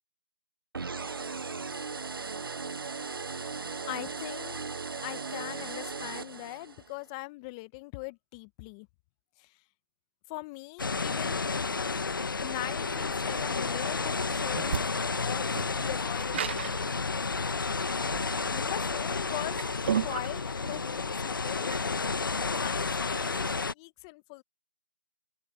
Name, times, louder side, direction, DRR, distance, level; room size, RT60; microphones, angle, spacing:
sound 1, 0.7-6.9, right 4 dB, 75° right, 0.6 m, -37 dB
voice 1, 3.3-4.7 5.0-8.9 9.4-9.6 10.3-11.4 12.4-16.9 18.5-19.6 20.0-21.8 22.4-24.4, left 26 dB, 15° left, 1.0 m, -41 dB
sound 2, 10.8-23.7, left 4 dB, 65° left, 1.4 m, -31 dB
sound 3, 13.1-23.5, right 9 dB, 30° right, 1.1 m, -37 dB
open air
figure-of-eight pair, 160°, 12 cm